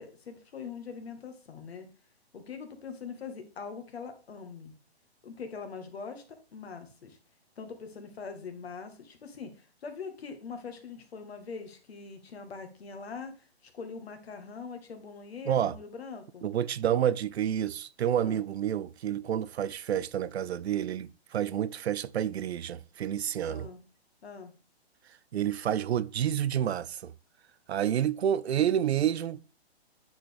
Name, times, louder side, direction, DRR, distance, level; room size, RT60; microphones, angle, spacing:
voice 1, 0.0-1.9 2.3-4.7 5.2-6.2 6.5-7.2 7.6-16.5 18.2-18.4 23.4-23.8 24.2-24.5, left 5 dB, 65° left, 1.8 m, -42 dB
voice 2, 15.4-15.8 16.4-23.7 25.3-27.1 27.7-29.4, right 10 dB, 75° right, 0.5 m, -29 dB
9.6 x 4.3 x 3.5 m
hypercardioid pair, 140°, 33 cm